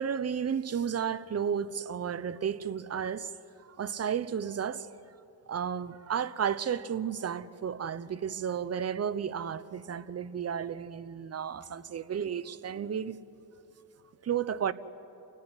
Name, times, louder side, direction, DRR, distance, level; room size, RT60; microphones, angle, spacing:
voice 1, 0.0-3.3 3.8-4.9 5.5-13.2 14.2-14.7, right 8 dB, 35° right, 0.8 m, -32 dB
28.0 x 15.0 x 9.8 m
cardioid pair, 90°, 43 cm